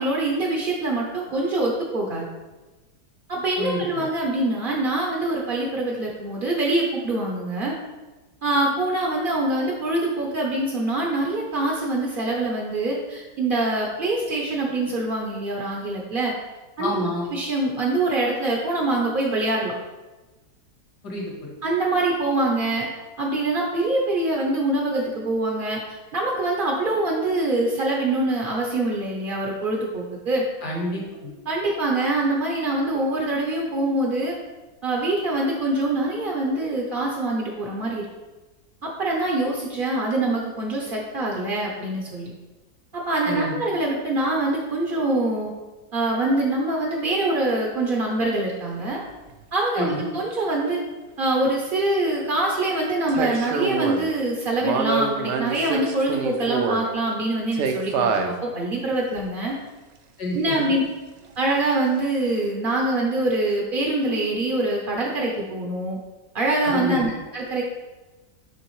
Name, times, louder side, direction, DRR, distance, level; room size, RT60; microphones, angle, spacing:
voice 1, 0.0-2.3 3.3-7.7 8.4-16.3 16.8-19.7 21.6-22.9 23.2-25.8 26.1-30.4 31.5-34.4 34.8-38.0 38.8-42.3 42.9-45.5 45.9-49.0 49.5-50.8 51.2-59.5 60.3-60.8 61.4-66.0 66.3-67.6, right 2 dB, 50° right, -2 dB, 0.6 m, -24 dB
voice 2, 16.8-17.3 21.0-21.6 30.6-31.3 43.3-43.6 49.8-50.1 60.2-60.7 66.6-67.0, left 1 dB, 70° left, -2 dB, 2.0 m, -29 dB
sound 1, 48.2-48.3 53.1-54.1 54.6-56.9 57.5-58.3 59.1-59.2, right 5 dB, 80° right, 1.2 m, -25 dB
9.7 x 3.5 x 3.1 m, 1.2 s
omnidirectional pair, 1.9 m